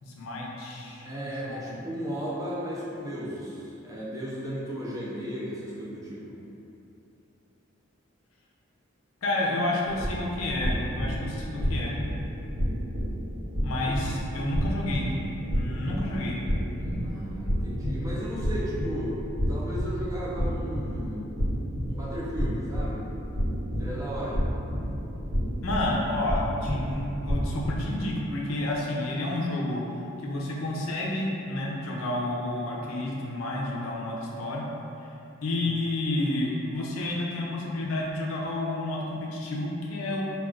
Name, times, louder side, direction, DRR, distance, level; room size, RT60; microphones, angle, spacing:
voice 1, 0.0-1.8 9.2-12.0 13.6-15.1 15.5-16.4 25.6-29.8 30.2-34.6 35.0-35.1 35.4-40.2, left 1 dB, 80° left, -3 dB, 0.5 m, -30 dB
voice 2, 1.0-6.4 13.8-14.0 16.7-19.2 19.5-21.4 21.9-23.1 23.8-24.5 35.5-35.8, equal, 15° right, -7 dB, 0.4 m, -35 dB
sound 1, 9.8-28.1, equal, 75° right, 1.1 m, -30 dB
2.3 x 2.3 x 3.6 m, 2.8 s
head